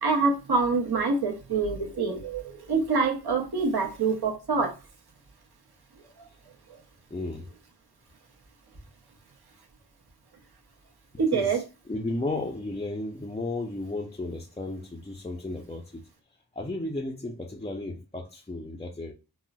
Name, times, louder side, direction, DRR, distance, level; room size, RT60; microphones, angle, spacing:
voice 1, 0.0-4.7 6.2-6.3 11.2-11.6, right 4 dB, 70° right, 0.9 m, -26 dB
voice 2, 7.1-7.5 11.3-11.6 11.9-16.1 16.5-19.1, left 2 dB, 15° left, 0.4 m, -34 dB
3.8 x 2.0 x 2.2 m
wide cardioid pair, 50°, 40 cm